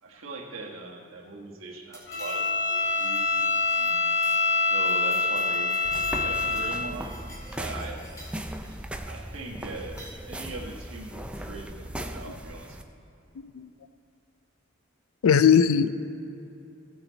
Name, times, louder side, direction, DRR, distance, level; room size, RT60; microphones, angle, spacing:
voice 1, 0.0-4.0 4.6-7.1 7.6-8.0 9.0-12.8, right 2 dB, 70° right, 0 dB, 1.4 m, -40 dB
sound 1, 1.9-2.7 3.0-3.3 3.6-3.9 4.2-4.4 4.7-6.7 7.0-8.8 9.7-10.2, equal, 15° left, 2.1 m, -49 dB
Bowed string instrument, 2.1-7.0, left 4 dB, 55° left, 0.8 m, -25 dB
sound 2, 5.8-12.8, right 1 dB, 5° right, 0.4 m, -38 dB
voice 2, 15.2-15.9, left 7 dB, 85° left, 13 dB, 0.4 m, -19 dB
15.5 x 6.9 x 4.0 m, 2.8 s
head